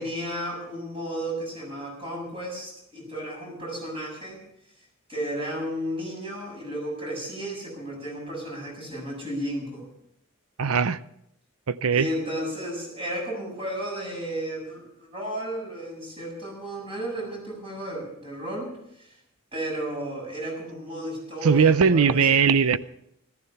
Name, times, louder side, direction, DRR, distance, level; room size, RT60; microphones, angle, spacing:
voice 1, 0.0-4.4 5.1-9.9 11.9-19.1 19.5-22.4, right 1 dB, 25° right, 7.2 m, -33 dB
voice 2, 10.6-11.0 11.7-12.1 21.4-22.8, right 6 dB, 80° right, 0.7 m, -19 dB
14.5 x 14.0 x 5.7 m
head